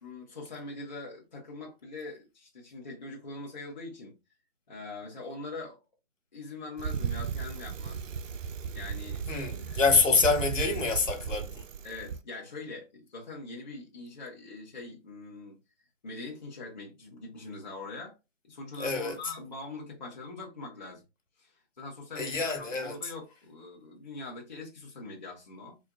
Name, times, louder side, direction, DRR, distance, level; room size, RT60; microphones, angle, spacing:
voice 1, 0.0-4.2 4.7-5.8 6.3-8.1 8.7-9.3 9.7-9.8 11.8-15.6 16.0-18.2 18.4-21.0 21.4-25.8, left 3 dB, 35° left, 1.0 m, -43 dB
Bicycle, 6.8-12.2, right 6 dB, 80° right, 0.5 m, -35 dB
voice 2, 9.3-11.6 18.8-19.2 22.1-22.9, left 4 dB, 80° left, 1.4 m, -26 dB
4.4 x 2.5 x 2.3 m
hypercardioid pair, 170°, 38 cm